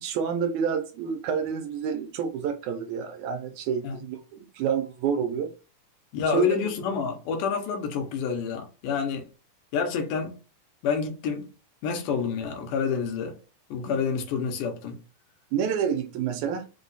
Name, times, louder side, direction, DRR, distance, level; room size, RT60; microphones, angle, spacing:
voice 1, 0.0-5.5 6.3-6.6 15.5-16.7, right 7 dB, 75° right, 2.0 m, -28 dB
voice 2, 6.1-9.3 9.7-10.4 10.8-11.5 11.8-13.4 13.7-15.0, left 6 dB, 80° left, 2.4 m, -28 dB
5.4 x 2.3 x 3.9 m
omnidirectional pair, 3.6 m